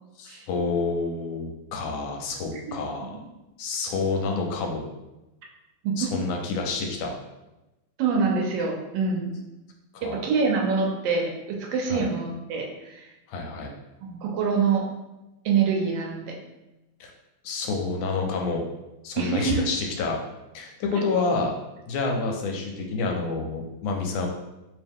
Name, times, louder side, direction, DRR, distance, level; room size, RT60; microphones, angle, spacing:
voice 1, 0.2-3.1 3.6-4.8 6.0-7.1 9.9-10.2 11.9-12.0 13.3-13.7 17.0-17.1 17.4-18.6 19.0-20.2 20.5-21.5 21.9-24.3, left 3 dB, 75° left, 1 dB, 1.3 m, -28 dB
voice 2, 8.0-9.3 10.0-13.1 14.0-14.8 15.4-16.4 19.2-19.6, right 5 dB, 70° right, 0 dB, 1.2 m, -25 dB
3.2 x 2.8 x 3.5 m, 0.99 s
omnidirectional pair, 2.4 m